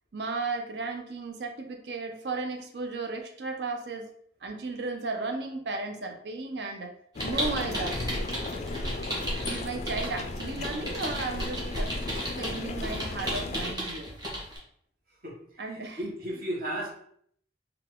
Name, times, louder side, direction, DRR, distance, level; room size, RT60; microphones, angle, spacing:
voice 1, 0.1-4.1 4.4-6.9 7.2-8.3 9.4-11.9 12.4-14.1 15.6-16.1, right 3 dB, 65° right, 4 dB, 0.6 m, -35 dB
sound 1, 7.2-13.8, left 2 dB, 40° left, 0.3 m, -35 dB
sound 2, 7.2-14.6, right 1 dB, 25° right, 1.1 m, -35 dB
voice 2, 15.2-16.9, right 1 dB, 50° right, -3 dB, 1.1 m, -35 dB
3.7 x 2.3 x 3.6 m, 0.65 s
head